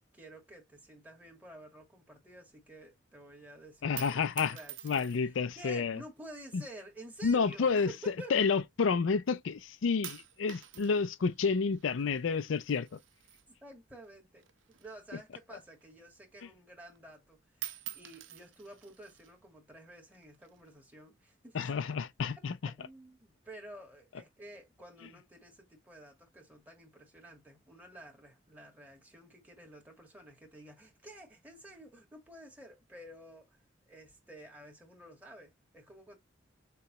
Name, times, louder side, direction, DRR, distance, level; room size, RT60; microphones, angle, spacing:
voice 1, 0.1-8.3 13.6-14.5 14.8-21.6 22.8-36.2, right 1 dB, 10° right, 1.7 m, -51 dB
sound 1, 3.7-5.4 6.3-6.7 7.5-8.9 9.3-9.7 10.0-14.1 14.4-16.1 16.4-16.5 16.9-17.3 17.5-19.3 20.1-20.7, right 13 dB, 75° right, 0.7 m, -48 dB
voice 2, 3.8-4.6 4.8-6.0 6.5-6.6 7.2-7.9 8.3-13.0 21.5-22.7, left 5 dB, 75° left, 0.4 m, -30 dB
6.6 x 2.3 x 2.9 m
head